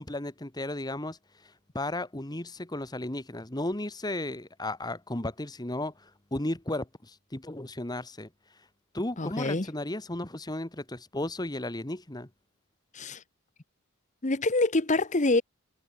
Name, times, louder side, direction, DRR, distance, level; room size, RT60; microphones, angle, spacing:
voice 1, 0.0-8.3 8.9-12.3, left 1 dB, 20° left, 1.5 m, -34 dB
voice 2, 9.2-9.7 12.9-13.2 14.2-15.4, left 2 dB, 35° left, 1.1 m, -26 dB
head